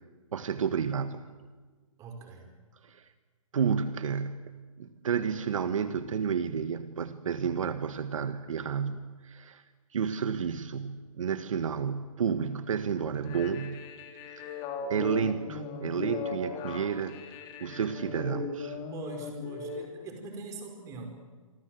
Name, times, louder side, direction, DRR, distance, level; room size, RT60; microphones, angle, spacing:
voice 1, 0.3-1.2 2.8-3.1 3.5-4.4 4.8-9.6 9.9-13.8 14.4-14.5 14.9-18.8, right 7 dB, 70° right, 10 dB, 1.7 m, -31 dB
voice 2, 2.0-2.5 18.9-21.1, right 4 dB, 20° right, 4 dB, 5.2 m, -43 dB
sound 1, 13.1-19.8, left 4 dB, 25° left, 3.4 m, -38 dB
27.5 x 24.0 x 7.9 m, 1.4 s
hypercardioid pair, 155°, 18 cm